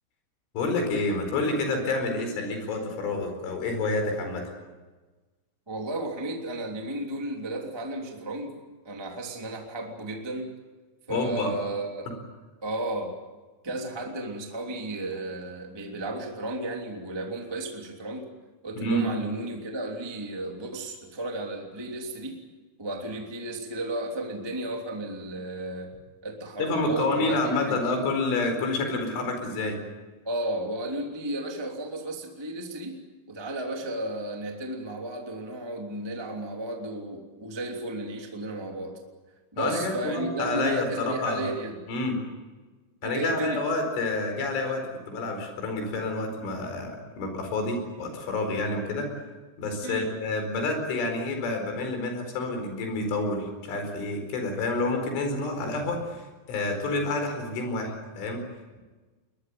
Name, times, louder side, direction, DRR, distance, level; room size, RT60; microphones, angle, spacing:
voice 1, 0.6-4.5 11.1-11.5 18.8-19.0 26.6-29.8 39.6-41.4 41.9-42.2 43.0-49.1 49.6-56.2 56.5-58.4, left 2 dB, 70° left, 5 dB, 7.0 m, -28 dB
voice 2, 5.7-8.5 8.8-10.5 11.1-12.1 12.6-13.1 13.6-18.2 18.6-22.4 22.8-25.9 26.2-28.1 30.2-32.9 33.3-39.0 39.5-41.8 43.0-43.6 49.8-50.1, right 1 dB, 10° right, 1 dB, 1.7 m, -33 dB
22.0 x 21.5 x 9.4 m, 1.3 s
omnidirectional pair, 5.9 m